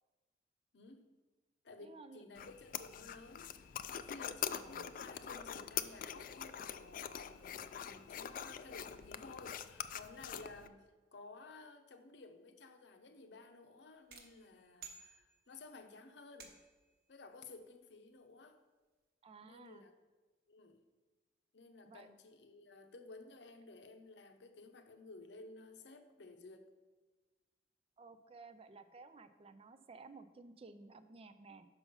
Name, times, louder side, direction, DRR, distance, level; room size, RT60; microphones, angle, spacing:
voice 1, 0.7-1.1 1.6-3.5 3.9-10.8 11.1-16.5 17.1-18.6 19.4-19.9 20.5-20.8 21.5-26.7, left 3 dB, 70° left, 7 dB, 0.8 m, -55 dB
voice 2, 1.8-2.2 4.5-4.9 19.2-19.9 21.8-22.1 28.0-31.7, right 3 dB, 35° right, 11 dB, 0.4 m, -55 dB
sound 1, 2.4-10.7, left 9 dB, 50° left, 0.3 m, -44 dB
sound 2, 14.1-15.7 16.4-16.9, right 6 dB, 55° right, 1.0 m, -55 dB
6.8 x 5.8 x 5.5 m, 1.3 s
head